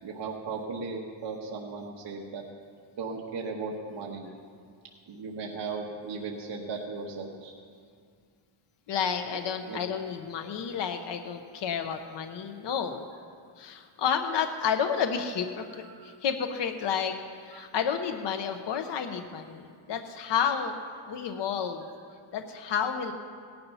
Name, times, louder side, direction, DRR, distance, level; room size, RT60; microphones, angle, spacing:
voice 1, 0.0-2.4 3.0-4.3 5.1-7.5 9.3-9.4 9.7-9.8 15.8-16.1 17.5-17.7 21.8-21.9, right 4 dB, 55° right, -2 dB, 1.4 m, -37 dB
voice 2, 8.9-13.0 13.6-17.1 17.4-20.7 21.1-21.9 22.3-23.1, left 7 dB, 55° left, 6 dB, 1.0 m, -30 dB
17.5 x 11.5 x 5.6 m, 2.2 s
cardioid pair, 160°, 50 cm